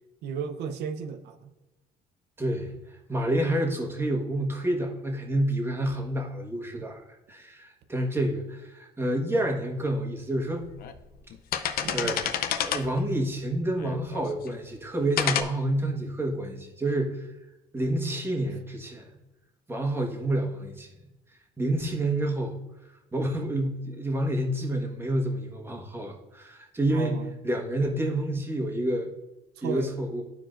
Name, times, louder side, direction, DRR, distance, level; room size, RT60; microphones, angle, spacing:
voice 1, 0.2-1.5 6.8-6.9 11.8-12.1 26.9-27.3 29.6-29.9, right 6 dB, 80° right, 0.7 m, -34 dB
voice 2, 2.4-2.7 3.1-10.7 11.6-12.2 12.6-17.3 17.7-19.1 19.7-20.9 21.6-22.6 23.1-29.1 29.6-30.2, right 1 dB, 15° right, 1.4 m, -28 dB
sound 1, 9.9-10.0 10.6-11.0 11.3-13.0 13.8-14.5 15.2-15.4, left 9 dB, 65° left, 0.6 m, -29 dB
12.5 x 4.7 x 2.5 m
cardioid pair, 110°, 17 cm